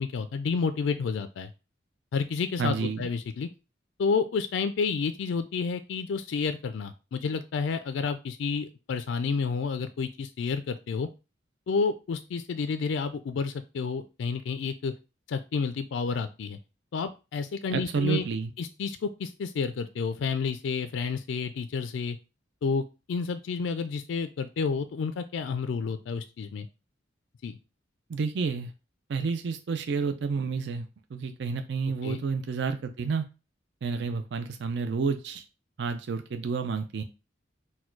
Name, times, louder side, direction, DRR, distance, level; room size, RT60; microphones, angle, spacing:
voice 1, 0.0-1.5 2.1-3.5 4.0-11.1 11.7-14.9 15.3-16.6 16.9-18.2 18.6-22.2 22.6-26.7 27.4-27.6 32.0-32.2, left 5 dB, 80° left, 10 dB, 0.4 m, -30 dB
voice 2, 2.6-3.0 17.7-18.5 28.1-28.7 29.1-33.3 33.8-35.4 35.8-37.0, right 5 dB, 65° right, 8 dB, 0.4 m, -30 dB
4.3 x 2.2 x 4.5 m, 0.29 s
head